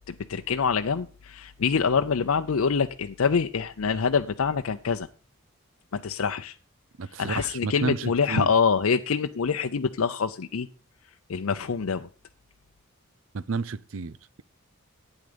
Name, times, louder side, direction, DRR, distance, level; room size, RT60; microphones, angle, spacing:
voice 1, 0.1-5.1 5.9-6.6 7.2-10.7 11.3-12.1, left 5 dB, 80° left, 0.6 m, -25 dB
voice 2, 7.0-8.5 13.3-14.4, right 4 dB, 70° right, 0.6 m, -31 dB
12.0 x 9.0 x 5.1 m
head